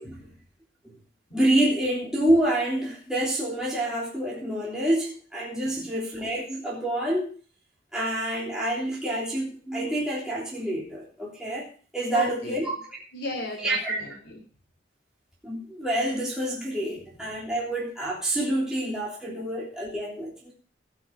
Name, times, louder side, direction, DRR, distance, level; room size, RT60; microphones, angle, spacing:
voice 1, 1.3-7.3 7.9-11.7 11.9-12.7 13.6-14.0 15.4-20.5, right 1 dB, 5° right, -6 dB, 3.4 m, -27 dB
voice 2, 12.1-12.6 13.1-14.4, left 1 dB, 75° left, -2 dB, 2.9 m, -35 dB
18.0 x 6.2 x 5.3 m, 0.42 s
head